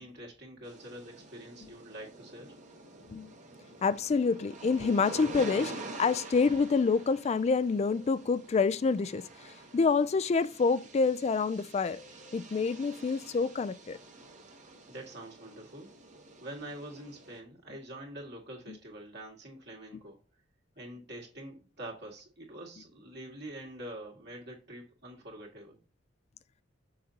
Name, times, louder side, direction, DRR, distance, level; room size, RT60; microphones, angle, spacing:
voice 1, 0.0-2.5 14.9-15.9 16.4-20.2 20.8-25.8, right 1 dB, 60° right, 2.1 m, -45 dB
sound 1, 0.6-17.4, right 2 dB, 40° right, 1.1 m, -47 dB
voice 2, 3.8-5.7 6.0-9.2 9.7-14.0, left 4 dB, 35° left, 0.3 m, -27 dB
6.7 x 5.2 x 2.8 m
head